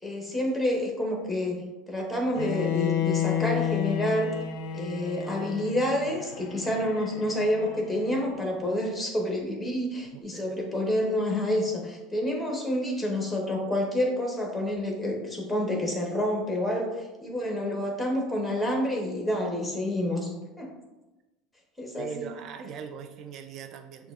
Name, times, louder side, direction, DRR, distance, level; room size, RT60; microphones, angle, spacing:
voice 1, 0.0-4.3 4.7-20.3 20.6-20.7 21.8-22.3, left 1 dB, 5° left, 0 dB, 1.1 m, -28 dB
Bowed string instrument, 2.4-8.4, left 9 dB, 65° left, 0.4 m, -31 dB
voice 2, 10.1-10.6 22.0-24.1, right 7 dB, 50° right, 8 dB, 0.4 m, -40 dB
6.4 x 2.3 x 2.4 m, 1.1 s
hypercardioid pair, 90°, 0 cm